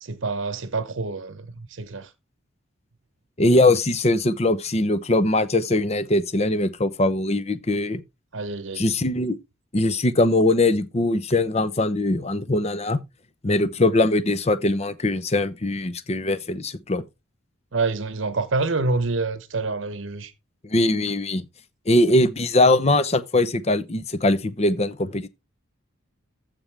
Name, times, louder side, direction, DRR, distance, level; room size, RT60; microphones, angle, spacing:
voice 1, 0.0-2.1 8.3-8.9 17.7-20.3, right 3 dB, 65° right, 0.9 m, -27 dB
voice 2, 3.4-8.0 8.8-9.4 9.7-13.0 13.4-17.0 20.6-21.4 21.9-25.3, left 2 dB, 30° left, 0.7 m, -21 dB
14.5 x 5.3 x 3.3 m
head